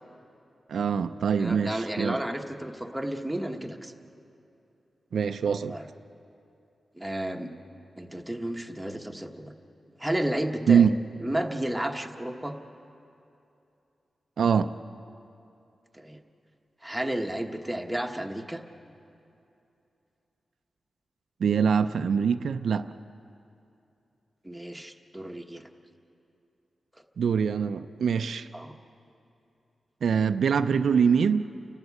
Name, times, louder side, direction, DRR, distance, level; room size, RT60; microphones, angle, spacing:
voice 1, 0.7-2.2 5.1-5.8 10.7-10.9 14.4-14.7 21.4-22.9 27.2-28.5 30.0-31.5, right 6 dB, 85° right, 9 dB, 0.5 m, -24 dB
voice 2, 1.4-3.9 5.7-5.8 7.0-7.5 8.0-9.5 10.0-10.9 11.2-12.5 16.0-16.2 16.8-18.6 24.4-25.6 28.5-28.7, right 1 dB, 5° right, 3 dB, 1.2 m, -32 dB
30.0 x 12.5 x 8.3 m, 2.7 s
wide cardioid pair, 120°, 0 cm